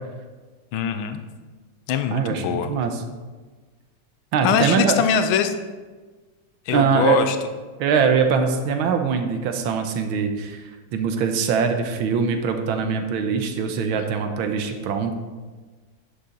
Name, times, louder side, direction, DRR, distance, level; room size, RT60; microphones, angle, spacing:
voice 1, 0.7-1.2 1.9-2.7 4.4-5.5 6.7-7.4, left 7 dB, 85° left, 9 dB, 1.5 m, -22 dB
voice 2, 2.1-3.0 4.3-5.0 6.7-7.2 7.8-15.1, right 6 dB, 85° right, 6 dB, 1.7 m, -22 dB
11.0 x 7.0 x 3.8 m, 1.3 s
omnidirectional pair, 2.2 m